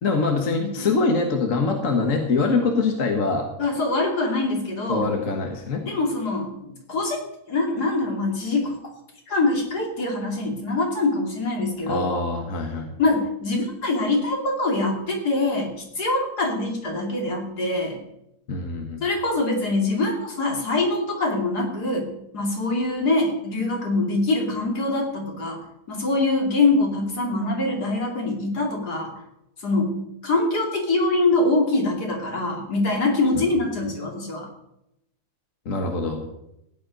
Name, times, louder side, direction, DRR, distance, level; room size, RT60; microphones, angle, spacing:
voice 1, 0.0-3.5 4.9-5.8 11.9-12.9 18.5-19.0 33.3-33.5 35.6-36.2, left 3 dB, 55° left, 3 dB, 1.8 m, -24 dB
voice 2, 3.6-5.1 5.8-6.5 6.9-7.2 7.5-8.7 9.3-12.1 13.0-18.0 19.0-29.1 29.6-30.0 30.2-34.5, left 2 dB, 75° left, 1 dB, 3.4 m, -24 dB
16.0 x 10.0 x 5.3 m, 0.83 s
omnidirectional pair, 1.7 m